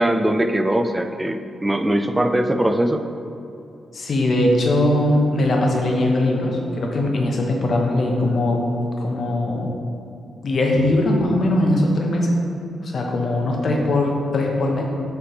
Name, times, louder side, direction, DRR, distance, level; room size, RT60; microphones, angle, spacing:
voice 1, 0.0-3.0, right 1 dB, 15° right, 8 dB, 0.4 m, -21 dB
voice 2, 3.9-8.6 9.0-9.7 10.4-12.3 12.8-14.8, left 1 dB, 55° left, 0 dB, 1.0 m, -20 dB
5.7 x 3.3 x 5.7 m, 2.7 s
cardioid pair, 90°, 0 cm